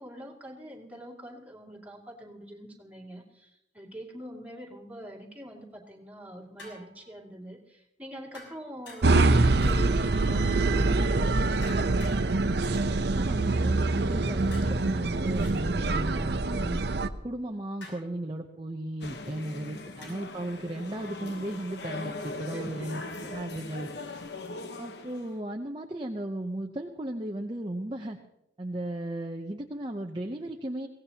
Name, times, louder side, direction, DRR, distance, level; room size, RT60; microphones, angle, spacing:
voice 1, 0.0-11.8 19.4-19.9 22.4-22.9 23.2-23.8, equal, 10° right, -3 dB, 2.4 m, -45 dB
sound 1, 6.6-7.1 8.3-9.3 9.6-10.1 11.6-12.2 12.6-12.9 14.5-15.5 17.8-18.1 20.0-20.4, left 2 dB, 80° left, 6.4 m, -48 dB
sound 2, 9.0-17.1, right 2 dB, 60° right, 0.7 m, -25 dB
voice 2, 13.1-16.8 17.2-23.0 23.3-23.9 24.8-28.2 28.6-30.9, right 1 dB, 25° right, 3 dB, 0.7 m, -35 dB
sound 3, 19.0-25.4, left 2 dB, 65° left, 1.1 m, -40 dB
23.0 x 17.0 x 2.9 m, 0.88 s
head